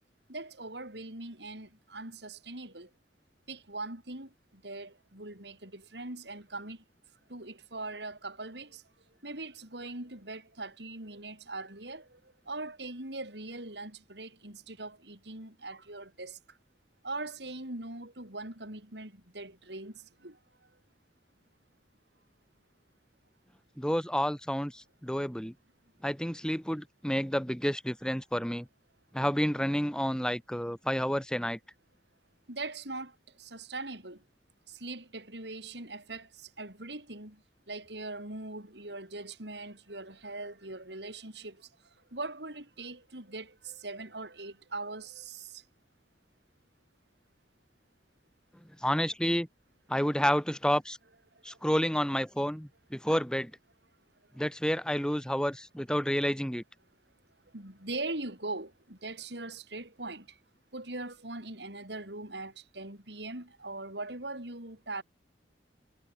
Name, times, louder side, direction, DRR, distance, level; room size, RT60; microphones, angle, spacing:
voice 1, 0.3-2.9 3.5-6.8 7.3-8.8 9.2-16.6 17.0-20.4 32.5-34.2 34.7-45.6 51.3-51.6 57.5-60.4 60.7-65.0, right 2 dB, 70° right, 7.4 m, -41 dB
voice 2, 23.8-25.5 26.0-28.7 29.1-31.6 48.8-49.5 49.9-51.0 51.4-53.5 54.4-56.6, equal, 5° left, 6.0 m, -30 dB
head